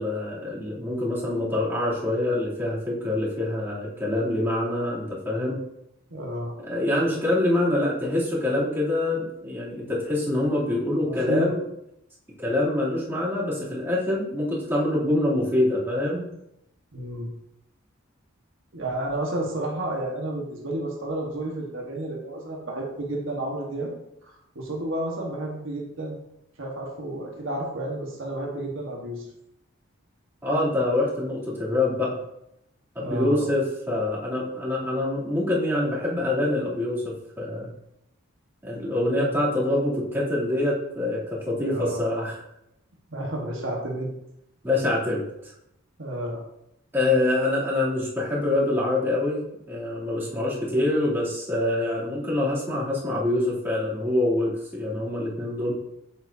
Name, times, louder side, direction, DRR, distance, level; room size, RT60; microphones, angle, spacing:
voice 1, 0.0-5.6 6.6-11.6 12.4-16.2 30.4-32.2 32.9-37.7 38.6-42.3 44.6-45.5 46.9-49.4 49.7-55.7, left 1 dB, 10° right, -9 dB, 2.9 m, -25 dB
voice 2, 6.1-6.5 11.0-11.5 16.9-17.3 18.7-23.9 24.2-26.2 26.6-29.3 33.0-33.4 39.2-39.4 41.6-42.1 43.1-44.1 46.0-46.4 55.6-55.7, right 1 dB, 65° right, -2 dB, 1.4 m, -31 dB
7.9 x 7.9 x 2.8 m, 0.81 s
head